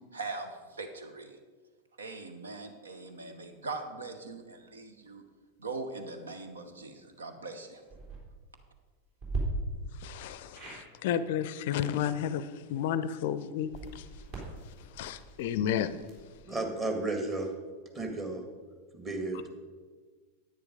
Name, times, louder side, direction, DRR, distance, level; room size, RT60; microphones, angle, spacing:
voice 1, 0.0-1.4 2.0-5.2 5.6-7.8, right 3 dB, 70° right, 1.0 m, -41 dB
sound 1, 7.8-8.2 9.2-9.4 10.5-10.8 13.6-16.4, right 4 dB, 45° right, 3.5 m, -41 dB
voice 2, 10.0-14.0 15.0-16.0, left 9 dB, 50° left, 0.5 m, -32 dB
voice 3, 16.4-17.5 17.9-18.4 18.9-19.5, right 2 dB, 20° right, 1.9 m, -33 dB
10.0 x 9.2 x 5.0 m
figure-of-eight pair, 90°, 0 cm